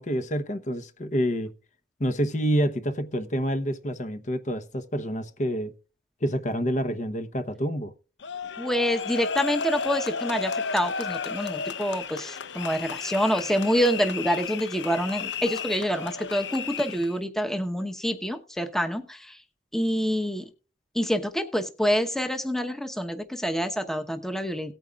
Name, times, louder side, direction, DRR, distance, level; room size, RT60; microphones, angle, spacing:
voice 1, 0.0-1.5 2.0-5.7 6.2-7.9, equal, 40° left, 0.9 m, -28 dB
sound 1, 8.2-17.1, left 5 dB, 85° left, 0.7 m, -33 dB
voice 2, 8.6-19.4 19.7-20.5 20.9-24.7, equal, ahead, 0.9 m, -27 dB
18.0 x 9.0 x 2.4 m
head